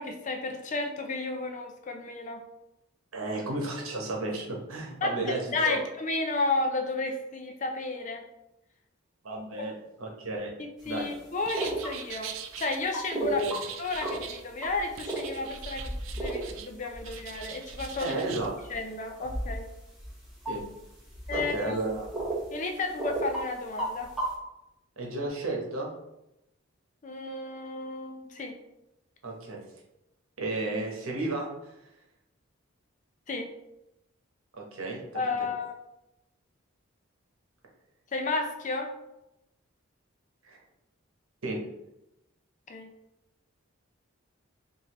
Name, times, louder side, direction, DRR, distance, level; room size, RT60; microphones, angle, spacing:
voice 1, 0.0-2.4 5.0-8.2 10.9-13.4 13.8-18.2 18.7-19.7 21.3-21.7 22.5-24.1 27.0-28.5 33.3-33.5 35.1-35.7 38.1-38.9 42.7-42.9, left 3 dB, 35° left, 4 dB, 0.5 m, -32 dB
voice 2, 3.1-5.4 5.6-5.8 9.2-9.7 10.0-10.5 10.8-11.1 13.1-13.5 18.0-18.5 20.5-20.6 21.3-22.1 25.0-25.9 29.2-29.6 30.4-31.5 34.6-35.0 40.4-40.6 41.4-41.6, right 2 dB, 90° right, 0 dB, 1.0 m, -32 dB
sound 1, 10.8-10.9 11.5-12.0 12.9-13.6 13.9-14.3 14.6-22.4 22.8-23.4 23.8-24.3, right 1 dB, ahead, 0.8 m, -35 dB
sound 2, 11.5-12.8 13.4-14.5 15.0-16.7 17.0-18.5, right 8 dB, 70° right, 0.3 m, -42 dB
4.8 x 2.6 x 2.9 m, 0.89 s
head